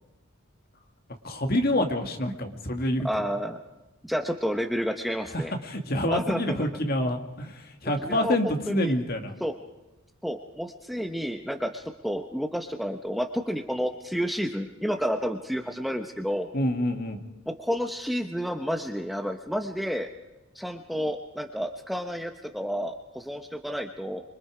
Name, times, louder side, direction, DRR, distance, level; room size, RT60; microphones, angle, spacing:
voice 1, 1.2-3.1 5.3-9.3 16.5-17.2, left 1 dB, 45° left, 5 dB, 2.1 m, -27 dB
voice 2, 3.0-3.6 4.0-5.5 6.1-6.7 8.0-9.0 9.4-9.6 10.2-16.5 17.5-20.1 20.5-24.2, equal, ahead, 4 dB, 0.9 m, -30 dB
25.5 x 23.5 x 5.0 m, 1.0 s
head